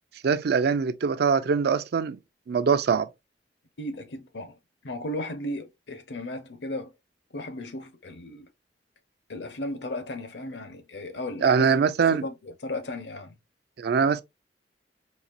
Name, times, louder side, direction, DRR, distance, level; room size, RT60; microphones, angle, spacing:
voice 1, 0.2-2.2 2.5-3.1 11.4-12.2 13.8-14.2, right 6 dB, 60° right, 0.4 m, -23 dB
voice 2, 3.8-4.5 4.8-6.9 7.3-8.5 9.3-11.8 12.1-13.4, left 1 dB, 70° left, 0.8 m, -35 dB
4.2 x 2.9 x 2.5 m
head